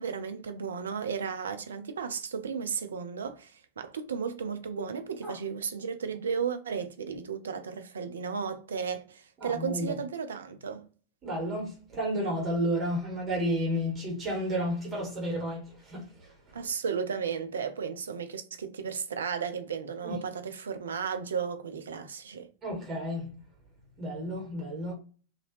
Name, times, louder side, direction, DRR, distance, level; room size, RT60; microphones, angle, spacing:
voice 1, 0.0-10.9 16.5-22.5, right 6 dB, 65° right, 0.5 m, -34 dB
voice 2, 9.4-9.9 11.2-16.3 20.0-20.2 22.6-23.3 24.0-24.9, equal, 25° right, 1.5 m, -32 dB
2.9 x 2.7 x 2.9 m
figure-of-eight pair, 90°, 0 cm